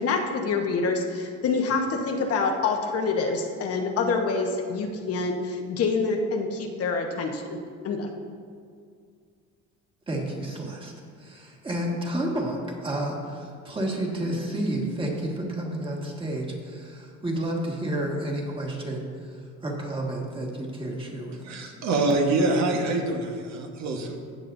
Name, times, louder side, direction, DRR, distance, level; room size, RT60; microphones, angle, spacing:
voice 1, 0.0-7.6 7.8-8.1, left 4 dB, 50° left, 2 dB, 1.1 m, -26 dB
voice 2, 10.1-10.9 11.2-21.7, right 1 dB, 15° right, -1 dB, 1.7 m, -31 dB
voice 3, 21.4-24.2, right 2 dB, 60° right, 2 dB, 1.4 m, -25 dB
15.5 x 7.4 x 2.7 m, 2.2 s
cardioid pair, 115°, 31 cm